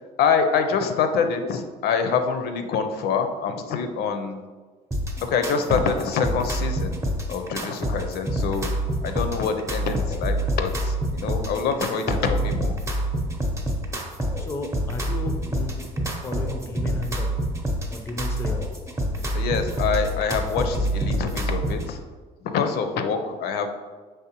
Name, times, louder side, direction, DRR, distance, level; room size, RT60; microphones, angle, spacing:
voice 1, 0.2-4.4 5.2-7.0 7.3-8.7 9.0-12.7 19.3-22.0 22.4-23.7, left 6 dB, 70° left, 7 dB, 0.5 m, -25 dB
sound 1, 4.9-21.9, right 1 dB, 15° right, 0.7 m, -27 dB
voice 2, 12.2-12.6 14.4-15.9 16.2-17.3 17.9-18.6 19.1-19.5, left 2 dB, 15° left, 6 dB, 0.4 m, -34 dB
4.7 x 3.2 x 2.9 m, 1.4 s
cardioid pair, 110°, 17 cm